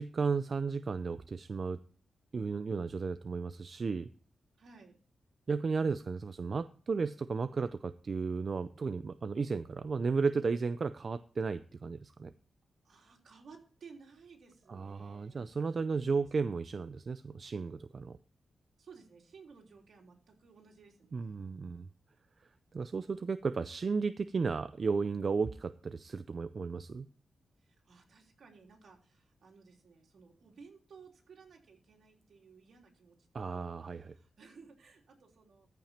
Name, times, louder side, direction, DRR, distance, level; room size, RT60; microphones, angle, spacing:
voice 1, 0.0-1.8 2.3-4.1 5.5-12.3 14.7-18.2 21.1-21.9 22.7-27.1 33.3-34.1, right 4 dB, 45° right, 11 dB, 0.5 m, -34 dB
voice 2, 4.6-5.0 12.8-16.5 18.8-21.4 27.6-35.7, right 5 dB, 70° right, 0 dB, 3.5 m, -57 dB
14.5 x 5.9 x 4.3 m, 0.44 s
wide cardioid pair, 115°, 0 cm